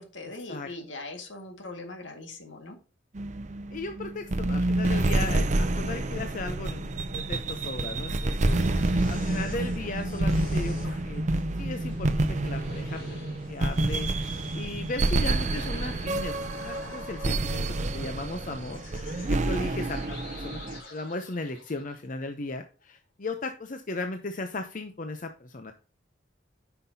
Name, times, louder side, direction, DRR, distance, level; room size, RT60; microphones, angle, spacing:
voice 1, 0.0-2.8 8.6-9.1, left 2 dB, 75° left, 4 dB, 1.8 m, -41 dB
sound 1, 3.1-20.8, right 2 dB, 40° right, 0.6 m, -28 dB
voice 2, 3.7-8.6 9.1-13.0 13.5-17.6 17.9-18.8 19.3-20.6 20.9-25.7, left 2 dB, 45° left, 7 dB, 0.6 m, -36 dB
sound 2, 7.9-22.1, left 3 dB, 90° left, 3.5 m, -48 dB
9.4 x 5.8 x 2.8 m, 0.36 s
head